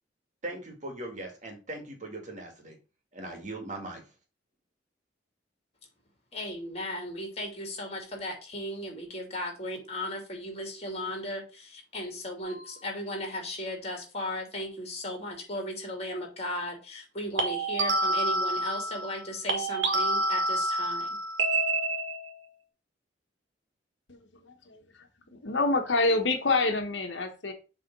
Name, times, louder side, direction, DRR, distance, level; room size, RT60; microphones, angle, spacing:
voice 1, 0.4-2.8 3.1-4.0, right 2 dB, 40° right, 3 dB, 2.0 m, -39 dB
voice 2, 6.3-21.1, left 1 dB, 35° left, 2 dB, 2.6 m, -36 dB
sound 1, 12.4-12.7 17.4-19.2 19.5-22.4, right 2 dB, 80° right, 1.7 m, -28 dB
voice 3, 24.1-24.8 25.3-27.5, left 3 dB, 75° left, 5 dB, 1.2 m, -27 dB
7.6 x 3.6 x 5.3 m, 0.33 s
head